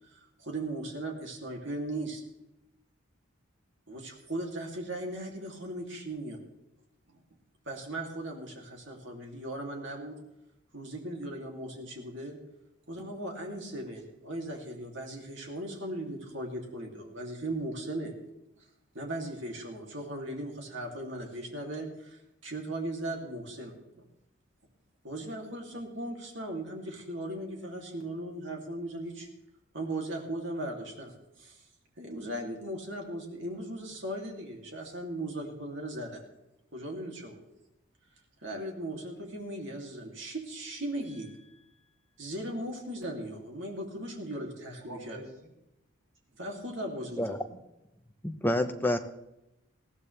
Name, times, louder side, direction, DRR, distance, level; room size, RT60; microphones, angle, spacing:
voice 1, 0.1-2.2 3.9-6.4 7.7-10.2 10.7-12.4 12.9-18.1 18.9-24.0 25.0-29.3 29.7-31.1 31.4-31.6 32.0-36.2 36.7-37.4 38.4-41.3 42.2-45.2 46.4-47.2, right 1 dB, 60° right, 1 dB, 2.9 m, -38 dB
voice 2, 41.0-42.1 44.8-45.5 46.9-47.6, right 1 dB, 85° right, -4 dB, 5.4 m, -50 dB
voice 3, 48.2-49.0, left 1 dB, 10° left, 6 dB, 0.8 m, -28 dB
20.5 x 15.0 x 3.4 m, 0.89 s
head